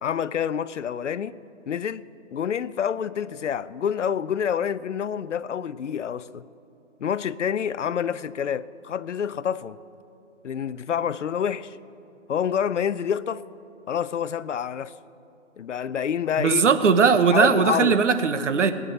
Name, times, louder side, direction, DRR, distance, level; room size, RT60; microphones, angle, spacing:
voice 1, 0.0-1.3 1.7-2.0 2.3-6.4 7.0-9.8 10.4-11.8 12.3-13.4 13.9-14.9 15.6-16.6 17.3-18.0, left 8 dB, 70° left, 0.6 m, -27 dB
voice 2, 16.4-18.7, right 5 dB, 70° right, 1.1 m, -19 dB
18.0 x 8.8 x 6.8 m
hypercardioid pair, 160°, 38 cm